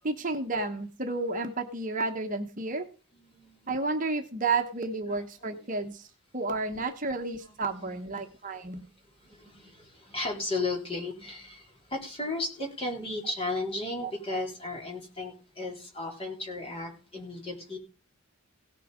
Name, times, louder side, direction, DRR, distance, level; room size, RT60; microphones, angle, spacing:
voice 1, 0.0-2.9 3.7-6.1 6.3-8.9 14.0-14.1, right 3 dB, 35° right, 1.0 m, -31 dB
voice 2, 3.1-3.6 5.0-5.8 7.6-8.3 8.8-17.8, left 2 dB, 25° left, 3.9 m, -35 dB
17.5 x 6.7 x 5.1 m
head